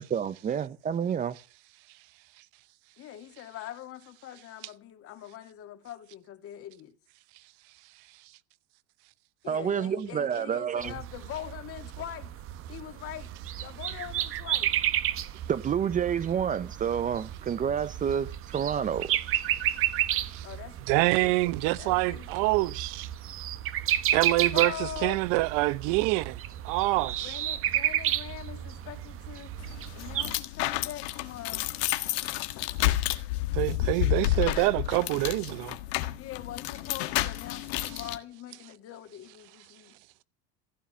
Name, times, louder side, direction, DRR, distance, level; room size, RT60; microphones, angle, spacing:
voice 1, 0.0-1.3 9.5-10.9 15.5-19.1, right 8 dB, 25° right, 0.7 m, -29 dB
voice 2, 3.0-6.9 9.4-12.3 12.7-13.3 13.6-14.7 20.4-21.3 21.8-22.8 24.5-25.2 27.2-29.5 29.9-31.7 36.2-40.0, left 12 dB, 45° left, 2.4 m, -42 dB
sound 1, 10.8-30.4, right 12 dB, 40° right, 1.2 m, -32 dB
voice 3, 20.9-23.1 24.1-26.4 26.6-27.4 33.5-35.8, right 20 dB, 65° right, 0.9 m, -26 dB
sound 2, 29.6-38.2, left 15 dB, 80° left, 1.6 m, -30 dB
15.5 x 10.0 x 7.0 m
supercardioid pair, 120°, 32 cm